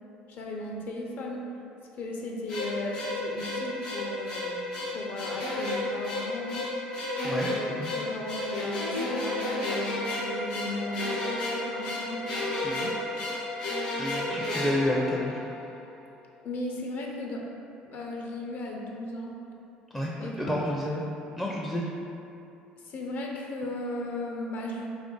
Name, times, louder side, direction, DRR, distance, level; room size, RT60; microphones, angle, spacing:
voice 1, 0.3-1.4 2.0-4.6 4.9-6.6 7.4-12.3 12.7-13.0 16.4-17.4 17.8-19.3 20.2-20.6 22.8-24.9, left 2 dB, 55° left, -1 dB, 0.6 m, -36 dB
sound 1, 2.5-15.7, left 1 dB, 90° left, 0.8 m, -32 dB
voice 2, 14.0-15.4 19.9-21.0 21.4-22.0, left 1 dB, 5° left, -4 dB, 0.4 m, -30 dB
3.2 x 2.5 x 3.7 m, 2.8 s
hypercardioid pair, 70°, 4 cm